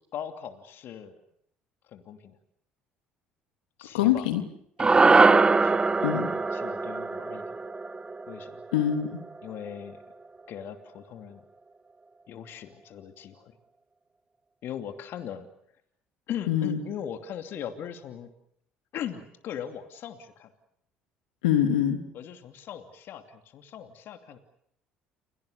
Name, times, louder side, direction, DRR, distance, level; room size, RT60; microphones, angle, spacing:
voice 1, 0.1-1.1 1.9-2.4 3.8-4.3 4.8-5.0 5.3-7.6 8.3-8.6 9.4-10.0 10.5-11.4 12.3-13.6 14.6-15.5 16.3-18.3 18.9-20.5 22.1-24.4, left 9 dB, 60° left, 7 dB, 2.7 m, -39 dB
voice 2, 3.9-4.4 6.0-6.3 8.7-9.2 16.5-16.8 21.4-22.0, left 10 dB, 90° left, 6 dB, 3.0 m, -24 dB
sound 1, 4.8-9.3, right 3 dB, 20° right, 0.9 m, -22 dB
30.0 x 24.0 x 6.8 m, 0.71 s
hypercardioid pair, 70°, 4 cm